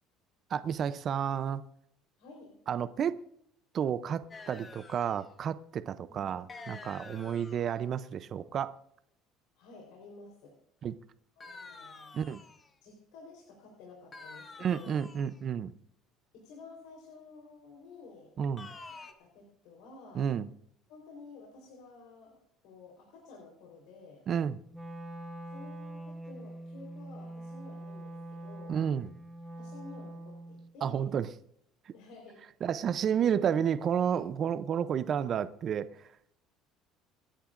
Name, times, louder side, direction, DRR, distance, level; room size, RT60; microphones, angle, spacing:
voice 1, 0.5-1.6 2.7-3.2 3.7-8.8 10.8-10.9 12.1-12.4 14.6-15.7 18.4-18.7 20.1-20.5 24.3-24.6 28.7-29.1 30.8-31.3 32.6-36.1, right 8 dB, 35° right, 0.5 m, -31 dB
voice 2, 2.2-2.6 6.1-6.4 9.6-10.5 11.4-12.2 12.8-15.0 16.3-18.7 19.2-20.3 20.9-24.3 25.5-28.8 29.6-31.1 31.9-32.4, left 3 dB, 80° left, 3.8 m, -52 dB
sound 1, 4.3-5.3 6.5-7.8 11.4-12.7 14.1-15.4 18.6-19.1, left 3 dB, 20° left, 1.0 m, -48 dB
Wind instrument woodwind instrument, 24.7-30.7, right 1 dB, 5° right, 1.1 m, -44 dB
27.0 x 10.0 x 2.5 m
cardioid pair, 160°, 0 cm